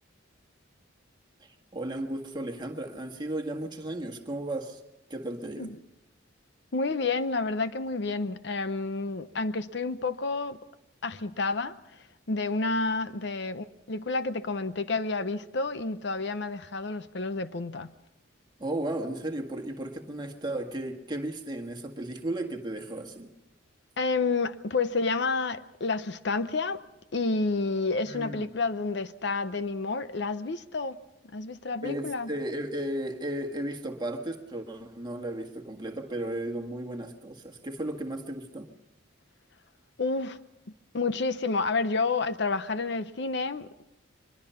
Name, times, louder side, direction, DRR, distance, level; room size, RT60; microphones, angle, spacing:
voice 1, 1.4-4.8 5.1-5.7 18.6-23.3 28.1-28.5 31.8-38.7, right 1 dB, 20° right, 3 dB, 1.7 m, -35 dB
voice 2, 6.7-10.6 11.0-17.9 24.0-26.8 27.1-31.0 31.3-32.3 40.0-40.4 40.9-43.7, left 3 dB, 60° left, 12 dB, 0.7 m, -30 dB
23.5 x 21.5 x 5.7 m, 0.90 s
head